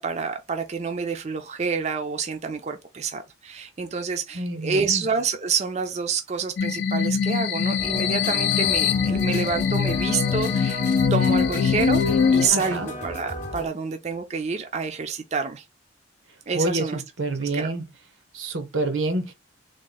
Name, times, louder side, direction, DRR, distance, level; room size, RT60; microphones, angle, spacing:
voice 1, 0.0-10.8 11.1-15.6 16.5-17.0 17.4-17.7, right 5 dB, 35° right, 0.4 m, -28 dB
voice 2, 4.3-5.0 12.5-12.9 16.5-17.8 18.3-19.3, right 2 dB, 85° right, 0.9 m, -27 dB
sound 1, 6.6-12.5, left 6 dB, 65° left, 0.4 m, -22 dB
sound 2, 7.8-13.7, equal, 40° left, 0.8 m, -34 dB
3.6 x 2.1 x 3.9 m
head